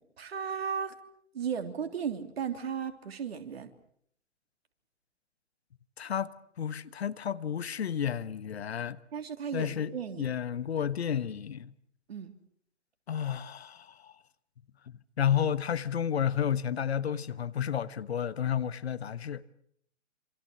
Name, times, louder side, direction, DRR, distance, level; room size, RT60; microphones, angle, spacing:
voice 1, 0.2-1.0 1.3-3.7 9.1-10.3 12.1-12.3, right 7 dB, 55° right, 3.3 m, -35 dB
voice 2, 6.0-9.0 9.5-11.7 13.1-14.1 14.9-19.4, left 9 dB, 60° left, 1.3 m, -31 dB
27.5 x 27.0 x 6.3 m
figure-of-eight pair, 125°, 37 cm